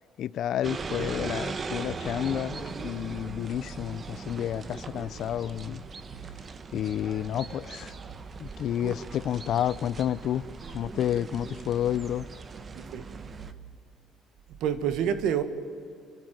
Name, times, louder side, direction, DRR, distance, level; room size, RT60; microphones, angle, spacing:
voice 1, 0.2-5.8 6.7-7.9 8.4-12.3, left 11 dB, 60° left, 0.4 m, -30 dB
sound 1, 0.6-13.5, right 4 dB, 30° right, 1.1 m, -39 dB
voice 2, 12.7-13.0 14.6-15.4, right 9 dB, 75° right, 1.5 m, -27 dB
29.0 x 12.0 x 9.1 m
cardioid pair, 115°, 0 cm